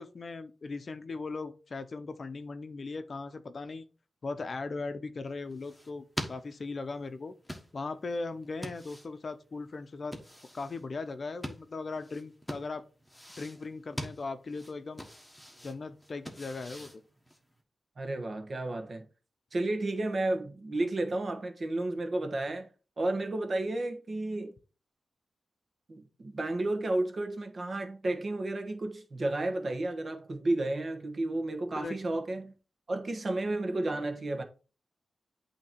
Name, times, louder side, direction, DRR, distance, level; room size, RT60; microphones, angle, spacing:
voice 1, 0.0-3.8 4.2-7.3 7.7-10.2 10.5-12.8 13.4-15.1 15.6-17.0 31.8-32.0, left 3 dB, 50° left, 0.6 m, -38 dB
sound 1, 5.3-17.6, equal, ahead, 1.3 m, -45 dB
voice 2, 18.0-19.0 19.5-22.7 23.0-24.5 25.9-32.5 32.9-34.4, right 2 dB, 45° right, 1.1 m, -32 dB
8.6 x 2.9 x 4.5 m
wide cardioid pair, 95°, 0 cm